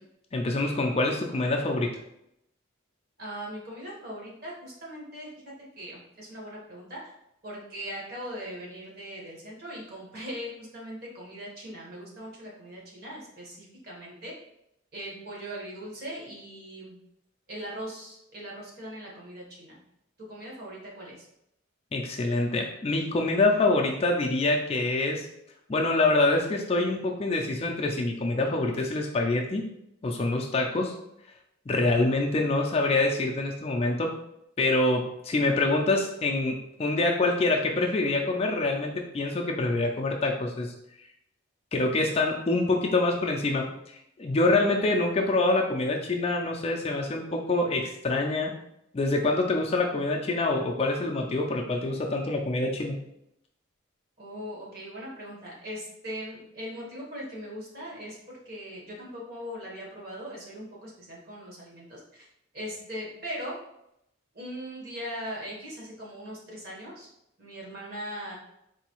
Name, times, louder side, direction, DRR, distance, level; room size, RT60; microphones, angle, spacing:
voice 1, 0.3-2.0 21.9-25.3 25.7-29.7 30.0-30.9 31.7-34.1 34.6-40.7 41.7-43.7 44.2-48.5 48.9-52.9, left 2 dB, 30° left, 1 dB, 0.3 m, -25 dB
voice 2, 3.2-5.3 5.8-7.1 7.4-14.3 14.9-17.0 17.5-19.8 20.3-21.3 54.2-62.3 62.5-63.6 64.3-67.1 67.4-68.4, equal, 45° right, -3 dB, 1.2 m, -40 dB
3.9 x 2.7 x 2.9 m, 0.79 s
head